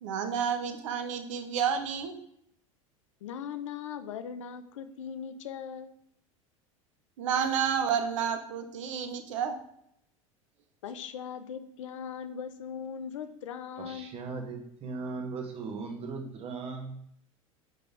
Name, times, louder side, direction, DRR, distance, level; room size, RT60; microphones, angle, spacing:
voice 1, 0.0-2.2 7.2-9.6, right 7 dB, 65° right, 8 dB, 0.9 m, -30 dB
voice 2, 3.2-6.0 10.8-14.1, left 7 dB, 65° left, 10 dB, 0.6 m, -39 dB
voice 3, 13.8-17.0, right 4 dB, 35° right, 3 dB, 1.4 m, -38 dB
9.1 x 3.8 x 3.6 m, 0.74 s
figure-of-eight pair, 80°, 18 cm